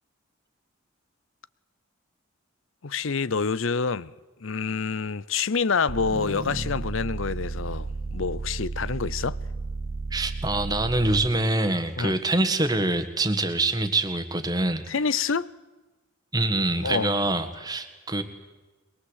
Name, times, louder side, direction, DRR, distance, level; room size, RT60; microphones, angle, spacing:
voice 1, 2.8-4.1 4.4-9.4 12.0-12.2 14.9-15.5 16.8-17.1, left 5 dB, 75° left, 0.7 m, -27 dB
sound 1, 5.9-11.5, right 3 dB, 45° right, 1.0 m, -33 dB
voice 2, 10.1-14.8 16.3-18.2, right 2 dB, 20° right, 1.7 m, -25 dB
22.5 x 22.0 x 8.2 m
head